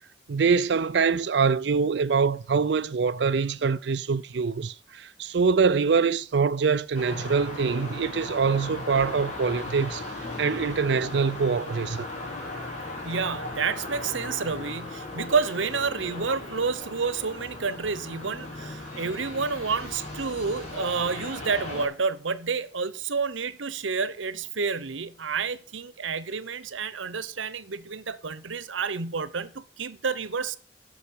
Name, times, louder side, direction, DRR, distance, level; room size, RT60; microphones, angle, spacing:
voice 1, 0.3-12.1, right 5 dB, 65° right, 0.4 m, -24 dB
sound 1, 6.9-21.9, left 2 dB, 35° left, 5.2 m, -37 dB
voice 2, 13.0-30.6, right 5 dB, 90° right, 0.9 m, -29 dB
10.0 x 6.8 x 8.4 m
head